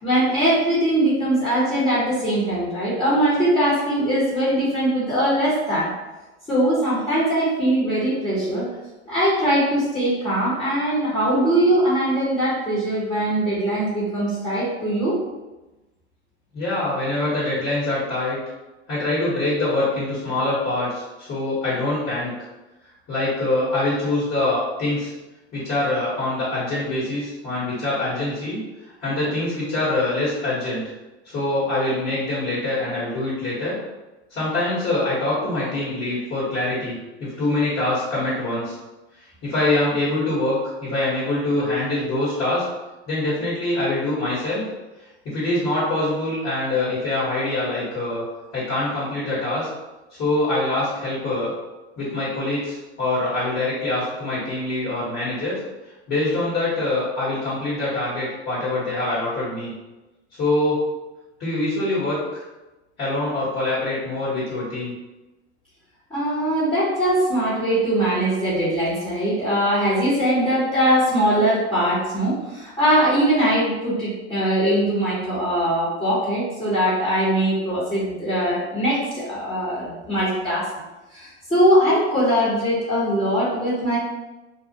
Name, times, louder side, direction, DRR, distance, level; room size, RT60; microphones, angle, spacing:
voice 1, 0.0-5.9 6.5-8.7 9.1-15.2 66.1-80.7 81.1-84.0, right 1 dB, 15° left, -11 dB, 1.0 m, -21 dB
voice 2, 16.5-18.4 18.9-22.3 23.1-25.1 25.5-28.6 29.0-30.9 31.2-33.7 34.3-38.8 39.4-42.6 43.1-44.6 45.2-48.2 48.5-49.7 50.1-51.5 52.0-55.6 56.1-59.7 60.3-60.8 61.4-62.4 63.0-64.9, left 2 dB, 40° left, -9 dB, 1.3 m, -24 dB
2.4 x 2.1 x 2.8 m, 1.1 s
hypercardioid pair, 85°, 34 cm